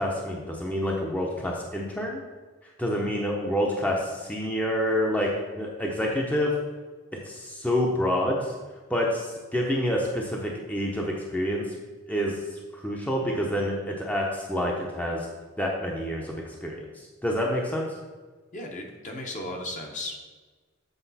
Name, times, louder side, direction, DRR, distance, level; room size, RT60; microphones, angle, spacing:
voice 1, 0.0-2.2 2.8-6.5 7.2-8.5 8.9-11.6 12.1-15.3 15.6-16.3 16.6-16.8 17.2-17.8, equal, 5° left, -1 dB, 0.7 m, -27 dB
voice 2, 18.5-20.3, left 1 dB, 40° left, 1 dB, 1.0 m, -35 dB
8.0 x 4.9 x 4.1 m, 1.3 s
head